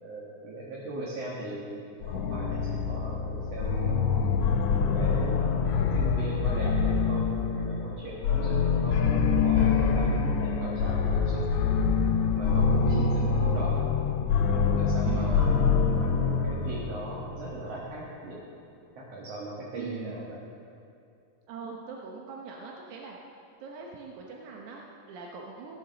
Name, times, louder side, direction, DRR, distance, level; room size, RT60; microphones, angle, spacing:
voice 1, 0.0-4.0 4.7-11.5 12.2-13.9 14.5-18.4 19.0-20.4, right 2 dB, 60° right, -5 dB, 2.6 m, -39 dB
sound 1, 2.0-17.7, left 5 dB, 75° left, 2.0 m, -25 dB
voice 2, 12.9-13.3 15.0-15.5 19.7-20.1 21.5-23.2 23.6-25.8, right 6 dB, 90° right, -1 dB, 2.4 m, -40 dB
15.5 x 7.2 x 6.5 m, 2.6 s
omnidirectional pair, 3.3 m